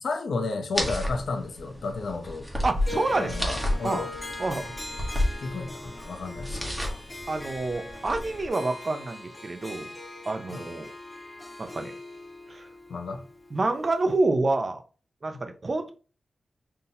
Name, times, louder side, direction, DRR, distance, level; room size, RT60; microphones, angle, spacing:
voice 1, 0.0-2.5 3.2-4.1 5.4-7.0 10.5-10.6 12.9-13.2 15.3-15.4, left 3 dB, 90° left, 0.7 m, -32 dB
sound 1, 0.7-8.5, left 1 dB, 10° right, 1.0 m, -32 dB
voice 2, 2.6-3.6 3.8-4.1 4.4-4.7 7.3-9.9 10.3-10.9 11.6-11.9 12.5-12.7 13.5-14.8 15.2-15.9, right 2 dB, 40° right, 0.5 m, -28 dB
Harp, 2.8-14.1, left 2 dB, 20° left, 1.4 m, -41 dB
5.6 x 2.8 x 2.7 m
wide cardioid pair, 125°, 0 cm